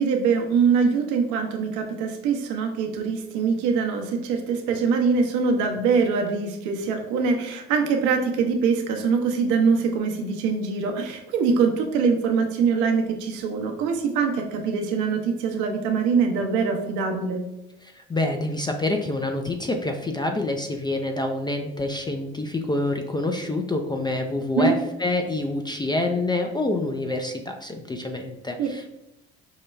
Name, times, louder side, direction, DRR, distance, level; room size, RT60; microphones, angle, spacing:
voice 1, 0.0-17.4 24.6-24.8 28.6-28.7, right 5 dB, 70° right, 3 dB, 0.8 m, -23 dB
voice 2, 17.8-28.9, left 2 dB, 15° left, 3 dB, 0.4 m, -27 dB
5.5 x 2.2 x 3.2 m, 0.88 s
hypercardioid pair, 70°, 31 cm